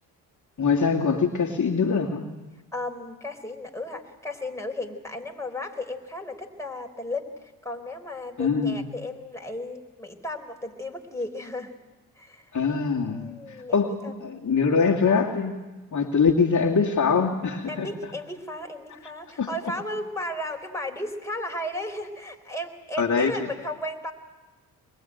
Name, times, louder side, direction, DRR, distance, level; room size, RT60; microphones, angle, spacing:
voice 1, 0.6-2.2 8.4-8.8 12.5-13.9 14.2-15.5 15.9-17.9 19.4-19.5 23.0-23.3, left 5 dB, 40° left, 0 dB, 2.4 m, -23 dB
voice 2, 2.7-11.7 12.2-12.5 13.0-14.1 17.7-24.1, left 1 dB, 5° left, 2 dB, 4.2 m, -35 dB
22.5 x 22.0 x 9.2 m, 1.1 s
hypercardioid pair, 55°, 45 cm